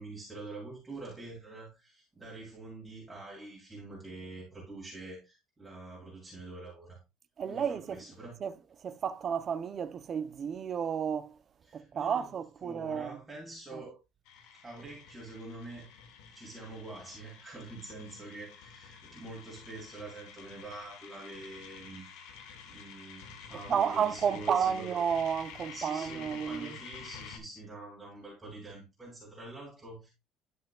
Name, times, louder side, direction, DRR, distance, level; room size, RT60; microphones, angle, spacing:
voice 1, 0.0-7.0 7.5-8.4 11.7-12.3 12.6-14.0 14.6-15.9 16.3-22.2 22.7-24.9 25.7-30.1, right 2 dB, 15° right, 2.7 m, -46 dB
voice 2, 7.4-8.0 8.4-8.5 8.8-11.4 11.7-13.2 13.7-13.8 23.7-26.7, right 7 dB, 35° right, 0.6 m, -31 dB
sound 1, 14.3-27.4, left 6 dB, 80° left, 1.4 m, -50 dB
11.5 x 5.6 x 2.3 m
cardioid pair, 150°, 0 cm